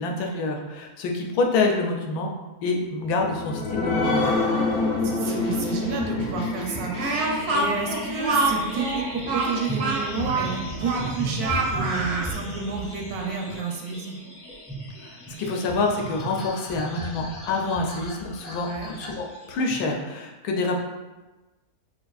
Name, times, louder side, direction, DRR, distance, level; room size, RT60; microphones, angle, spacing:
voice 1, 0.0-2.3 2.6-4.3 15.1-20.8, left 3 dB, 85° left, 1 dB, 1.1 m, -27 dB
sound 1, 3.0-10.1 10.6-10.7 11.0-11.1, left 3 dB, 60° left, 1.0 m, -28 dB
voice 2, 5.0-7.3 7.5-14.2 18.6-18.9, right 4 dB, 80° right, 1 dB, 1.1 m, -30 dB
sound 2, 5.2-19.9, right 1 dB, 40° left, 0.6 m, -36 dB
Speech, 6.9-12.3, right 3 dB, 65° right, 0.6 m, -26 dB
4.5 x 2.5 x 2.3 m, 1.1 s
omnidirectional pair, 1.6 m